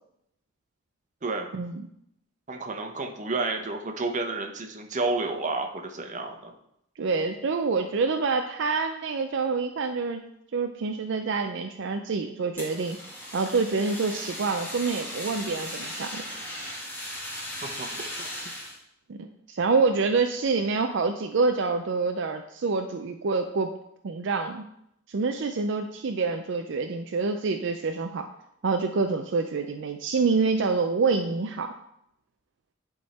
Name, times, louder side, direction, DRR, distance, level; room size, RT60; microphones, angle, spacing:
voice 1, 1.5-1.9 7.0-10.2 10.5-13.0 13.3-16.2 19.1-23.7 24.0-24.6 25.1-28.3 28.6-31.7, right 4 dB, 65° right, 6 dB, 0.5 m, -27 dB
voice 2, 2.5-6.5 17.6-18.3, right 3 dB, 40° right, 3 dB, 0.9 m, -31 dB
Fire, 12.6-18.8, equal, 10° left, 1.8 m, -37 dB
10.5 x 3.7 x 4.2 m, 0.77 s
head